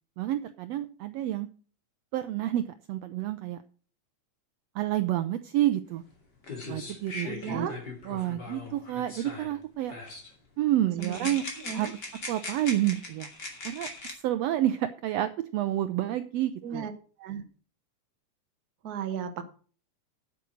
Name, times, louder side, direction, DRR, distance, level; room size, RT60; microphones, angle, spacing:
voice 1, 0.2-1.5 2.1-3.6 4.7-6.0 6.7-7.7 8.1-9.9 10.6-11.4 11.7-12.0 12.3-13.3 13.6-13.9 14.2-16.9, right 13 dB, 90° right, 10 dB, 1.4 m, -29 dB
sound 1, 6.1-6.2 6.4-9.6 9.9-10.3 11.0-14.1, left 3 dB, 35° left, 2.9 m, -40 dB
voice 2, 7.2-7.8 11.0-11.1 11.6-11.9 16.6-16.9 17.2-17.4 18.8-19.4, right 7 dB, 65° right, 7 dB, 0.9 m, -34 dB
8.5 x 8.2 x 6.3 m, 0.40 s
omnidirectional pair, 3.6 m